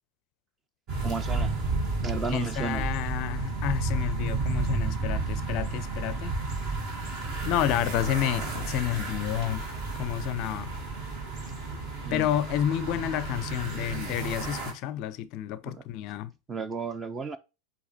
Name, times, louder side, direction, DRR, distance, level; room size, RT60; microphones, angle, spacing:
sound 1, 0.9-14.7, right 3 dB, 45° right, 2.3 m, -32 dB
voice 1, 1.0-1.5 2.0-2.9 12.0-12.3 15.6-15.8 16.5-17.4, right 4 dB, 20° right, 0.7 m, -33 dB
voice 2, 2.3-6.4 7.1-9.6 10.0-10.7 12.1-16.3, left 12 dB, 45° left, 0.5 m, -30 dB
8.1 x 2.9 x 4.4 m
figure-of-eight pair, 90°, 0 cm